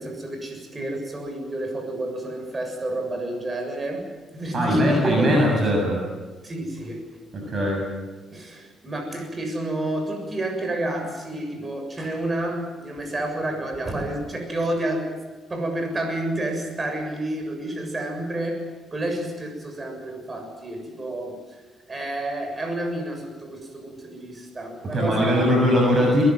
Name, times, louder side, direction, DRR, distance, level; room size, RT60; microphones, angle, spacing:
voice 1, 0.0-4.0 4.3-5.5 6.4-7.2 8.3-15.1 15.5-18.6 18.9-21.4 21.9-25.5, right 1 dB, 25° right, 4 dB, 7.2 m, -29 dB
voice 2, 4.5-6.0 7.3-7.8 24.9-26.2, equal, 45° right, 0 dB, 7.0 m, -20 dB
23.0 x 20.5 x 7.9 m, 1.4 s
cardioid pair, 90°, 0 cm